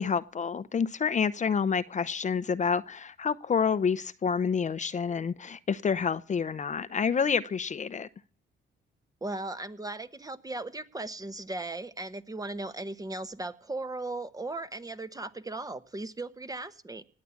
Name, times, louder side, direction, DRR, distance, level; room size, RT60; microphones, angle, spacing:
voice 1, 0.0-8.1, left 6 dB, 35° left, 14 dB, 0.7 m, -28 dB
voice 2, 9.2-17.0, right 2 dB, 20° right, 12 dB, 1.1 m, -37 dB
19.0 x 8.6 x 8.4 m, 0.43 s
cardioid pair, 90°, 20 cm